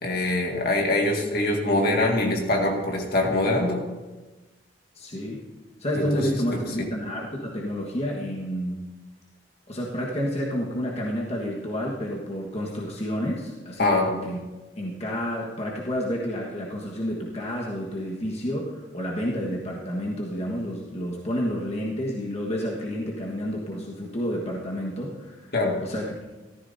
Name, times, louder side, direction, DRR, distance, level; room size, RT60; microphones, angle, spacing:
voice 1, 0.0-3.8 5.9-6.9 13.8-14.1 25.5-25.8, left 2 dB, 60° left, 1 dB, 1.9 m, -24 dB
voice 2, 4.9-5.4 5.8-8.8 9.7-14.4 14.8-25.5 25.8-26.1, equal, 35° left, -3 dB, 1.5 m, -30 dB
15.0 x 14.0 x 2.7 m, 1.2 s
head